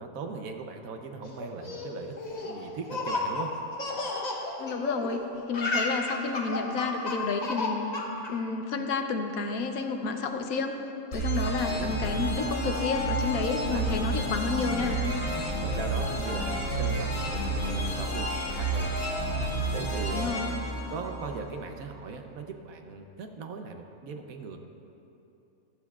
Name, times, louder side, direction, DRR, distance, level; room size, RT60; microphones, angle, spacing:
voice 1, 0.0-2.2 2.4-3.5 11.4-12.0 13.7-13.9 14.7-14.9 15.4-18.9 19.7-20.3 20.9-24.6, right 4 dB, 70° right, 5 dB, 1.1 m, -39 dB
Laughter, 1.4-5.2 5.4-8.3, left 2 dB, 35° left, 0.9 m, -32 dB
voice 2, 4.6-7.9 8.3-10.8 11.1-15.0 20.1-20.5, left 4 dB, 70° left, 5 dB, 1.1 m, -30 dB
sound 1, 11.1-21.7, right 1 dB, 55° left, 2.4 m, -30 dB
15.0 x 12.5 x 2.4 m, 2.9 s
omnidirectional pair, 1.6 m